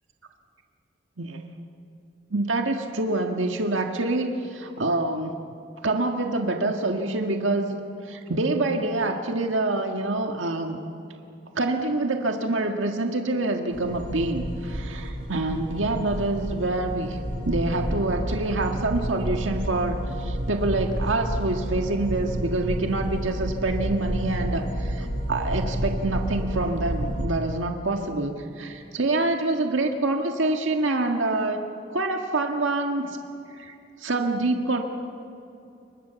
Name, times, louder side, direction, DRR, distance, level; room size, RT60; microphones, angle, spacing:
voice 1, 2.3-5.4 5.8-10.8 11.5-17.2 17.4-31.7 31.9-33.2 33.5-34.8, right 2 dB, 90° right, 4 dB, 1.7 m, -26 dB
sound 1, 13.7-27.2, equal, 45° right, 7.9 m, -30 dB
29.0 x 24.5 x 7.0 m, 2.8 s
head